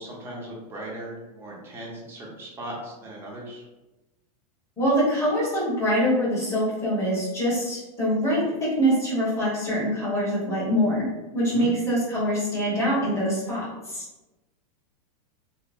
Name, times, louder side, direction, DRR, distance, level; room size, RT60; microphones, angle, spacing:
voice 1, 0.0-3.6 11.4-11.7, right 1 dB, 10° right, -3 dB, 0.5 m, -38 dB
voice 2, 4.8-11.1 11.3-14.0, equal, 15° left, -8 dB, 1.1 m, -24 dB
2.8 x 2.0 x 2.5 m, 1.1 s
supercardioid pair, 155°, 20 cm